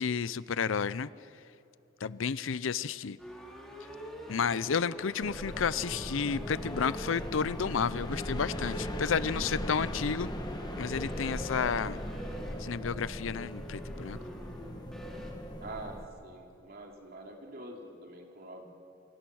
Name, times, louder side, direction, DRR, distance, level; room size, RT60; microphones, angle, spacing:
voice 1, 0.0-1.4 2.0-3.2 4.3-10.3 10.8-12.0 12.6-14.2, left 6 dB, 80° left, 18 dB, 0.6 m, -31 dB
sound 1, 3.2-15.3, equal, 5° left, 3.5 m, -45 dB
sound 2, 5.2-16.1, equal, 20° left, 1.5 m, -39 dB
voice 2, 15.6-18.6, right 2 dB, 50° right, 1 dB, 3.4 m, -45 dB
27.0 x 25.0 x 6.3 m, 2.7 s
head